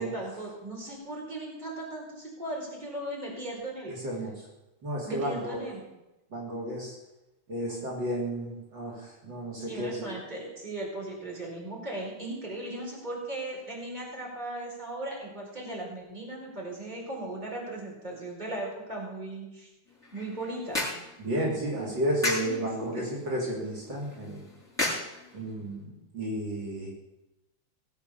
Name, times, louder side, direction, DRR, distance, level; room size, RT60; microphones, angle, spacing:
voice 1, 0.0-3.9 5.0-5.8 9.6-19.7 20.1-20.9 21.7-22.0 22.4-23.1, right 1 dB, 20° right, -2 dB, 4.8 m, -37 dB
voice 2, 3.9-4.3 4.8-5.6 6.3-7.0 7.5-10.1 21.2-24.5 25.3-26.9, right 1 dB, 60° right, -3 dB, 4.0 m, -32 dB
sound 1, 19.9-25.8, left 2 dB, ahead, 7.0 m, -36 dB
19.0 x 8.1 x 7.1 m, 0.97 s
omnidirectional pair, 2.2 m